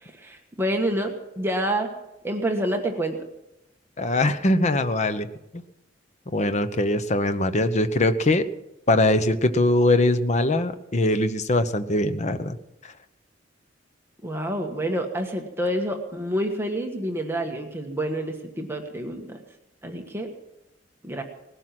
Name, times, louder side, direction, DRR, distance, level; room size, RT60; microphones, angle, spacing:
voice 1, 0.0-1.9 2.2-3.2 14.2-19.4 19.8-20.3 21.0-21.2, right 1 dB, 15° right, 2 dB, 1.5 m, -28 dB
voice 2, 4.0-5.3 6.3-8.4 8.9-12.6, left 1 dB, 40° left, 10 dB, 0.9 m, -22 dB
19.5 x 12.0 x 6.0 m, 0.91 s
head